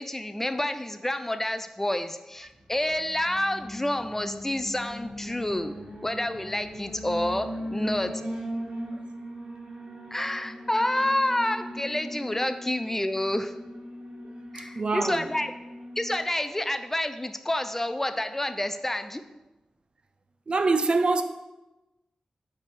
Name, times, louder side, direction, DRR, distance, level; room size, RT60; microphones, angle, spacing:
voice 1, 0.0-5.7 6.0-8.2 10.1-13.5 14.5-15.5 16.0-19.2, left 1 dB, 15° left, 0.4 m, -28 dB
Alarm, 2.7-16.2, equal, 85° right, 1.6 m, -39 dB
voice 2, 14.2-15.3 20.5-21.2, right 3 dB, 50° right, 0.5 m, -25 dB
8.1 x 3.4 x 6.2 m
wide cardioid pair, 85°, 2 cm